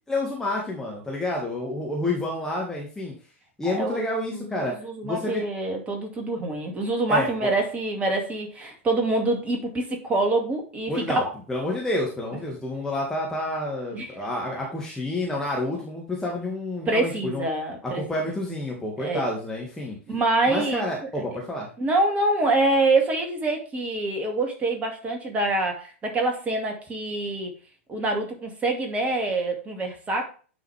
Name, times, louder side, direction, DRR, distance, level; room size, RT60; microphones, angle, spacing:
voice 1, 0.1-3.1 3.6-4.8 5.0-5.4 7.1-7.5 10.9-11.2 11.5-17.5 17.8-20.0 20.5-21.7, left 1 dB, 5° left, -2 dB, 1.8 m, -29 dB
voice 2, 3.7-11.3 13.9-14.3 16.8-18.0 19.0-19.2 20.1-20.9 21.2-21.3 21.8-27.5 27.9-30.2, right 2 dB, 20° right, 3 dB, 2.2 m, -26 dB
9.6 x 4.8 x 3.4 m, 0.38 s
figure-of-eight pair, 95°, 7 cm